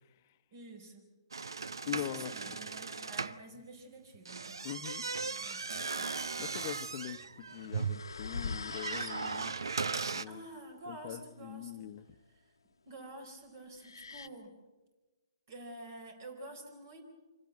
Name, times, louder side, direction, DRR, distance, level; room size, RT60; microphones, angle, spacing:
voice 1, 0.5-1.1 1.8-4.6 5.2-6.2 10.3-11.9 12.4-12.5 12.9-14.5 15.5-17.0, right 2 dB, 50° right, 5 dB, 4.3 m, -49 dB
sound 1, 1.3-3.4 4.1-10.2, right 4 dB, 85° right, 0.7 m, -38 dB
voice 2, 1.9-2.3 4.6-5.0 6.4-9.6 10.1-10.4 10.9-12.1, left 11 dB, 40° left, 12 dB, 1.0 m, -42 dB
sound 2, 7.5-9.9 13.8-14.3, left 4 dB, 85° left, 1.2 m, -43 dB
26.0 x 16.5 x 7.9 m, 1.2 s
hypercardioid pair, 140°, 2 cm